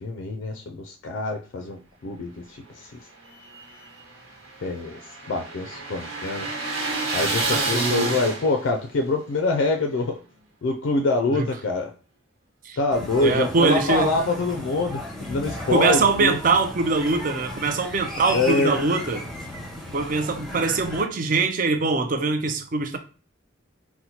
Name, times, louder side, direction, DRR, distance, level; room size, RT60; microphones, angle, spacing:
voice 1, 0.0-2.9 4.6-5.0 5.3-6.5 7.1-10.2 10.6-11.9 12.8-16.4 18.3-18.8, left 2 dB, 65° left, 3 dB, 0.3 m, -25 dB
sound 1, 3.3-8.8, right 3 dB, 90° right, 1.0 m, -29 dB
voice 2, 7.5-8.2 11.3-11.5 12.6-12.8 13.2-14.1 15.7-19.3 19.9-23.0, right 3 dB, 40° right, 7 dB, 0.4 m, -23 dB
sound 2, 12.9-21.0, equal, ahead, 0.6 m, -35 dB
4.2 x 2.0 x 2.8 m, 0.37 s
head